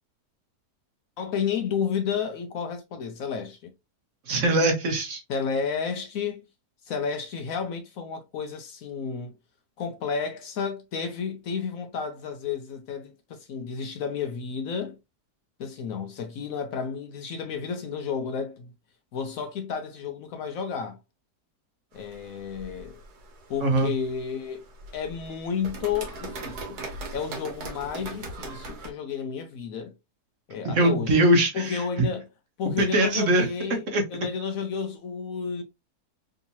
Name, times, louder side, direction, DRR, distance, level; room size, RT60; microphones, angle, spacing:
voice 1, 1.2-3.7 5.3-6.5 6.8-9.3 9.8-15.0 15.6-18.7 19.1-21.0 21.9-23.0 23.5-24.6 24.9-26.8 27.1-29.9 30.5-31.2 31.5-32.3 32.6-33.8 34.1-35.6, left 6 dB, 70° left, 0.9 m, -31 dB
voice 2, 4.3-5.2 23.6-23.9 30.7-31.8 32.8-33.5 33.9-34.0, right 1 dB, 55° right, 1.2 m, -21 dB
sound 1, 21.9-28.9, right 2 dB, 70° right, 1.5 m, -40 dB
3.6 x 2.8 x 2.7 m
omnidirectional pair, 1.7 m